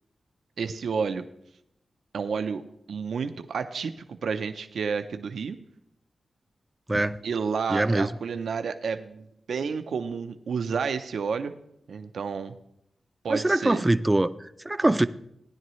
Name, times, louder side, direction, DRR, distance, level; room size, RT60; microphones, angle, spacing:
voice 1, 0.6-1.2 2.1-5.6 7.2-11.5 11.9-12.5 13.2-13.8, right 5 dB, 85° right, 0.6 m, -30 dB
voice 2, 7.7-8.1 13.3-15.1, right 1 dB, 15° right, 0.4 m, -23 dB
15.5 x 10.5 x 3.1 m
wide cardioid pair, 125°, 0 cm